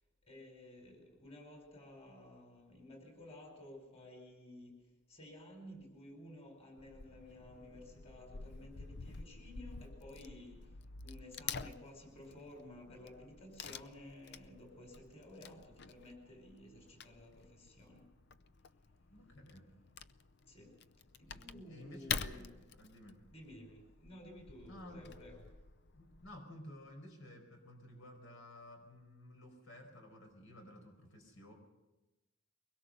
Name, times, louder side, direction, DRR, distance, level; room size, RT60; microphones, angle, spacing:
voice 1, 0.2-4.7 5.1-10.8 11.0-18.0 20.5-20.8 21.2-22.5 23.3-25.4, left 1 dB, 30° left, 3 dB, 4.9 m, -54 dB
Wood / Tearing, 6.8-26.4, left 6 dB, 55° left, 0.7 m, -48 dB
voice 2, 19.1-19.6 21.3-22.5 22.8-23.2 24.7-25.0 25.9-31.5, left 1 dB, 70° left, 3 dB, 4.9 m, -54 dB
23.0 x 21.5 x 6.7 m, 1.0 s
head